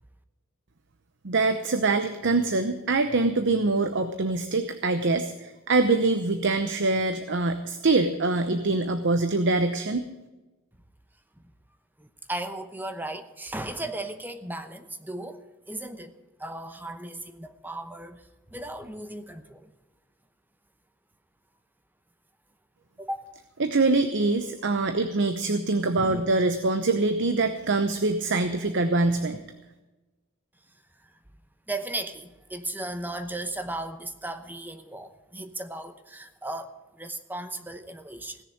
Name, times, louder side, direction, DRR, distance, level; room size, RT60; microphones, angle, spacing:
voice 1, 1.2-10.1 23.6-29.4, right 3 dB, 55° right, 9 dB, 0.8 m, -24 dB
voice 2, 12.0-16.1 16.4-18.2 18.5-19.7 23.0-23.2 26.0-26.2 31.7-38.4, right 1 dB, 10° right, 9 dB, 0.9 m, -36 dB
17.5 x 6.8 x 8.8 m, 1.1 s
head